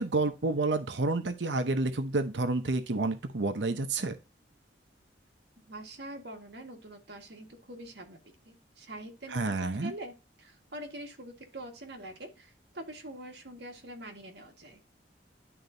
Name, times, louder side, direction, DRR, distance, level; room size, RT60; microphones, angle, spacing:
voice 1, 0.0-4.2 9.3-9.9, right 2 dB, 85° right, 0.8 m, -29 dB
voice 2, 5.6-8.2 8.4-14.8, right 1 dB, 65° right, 1.6 m, -45 dB
11.0 x 4.0 x 2.6 m
head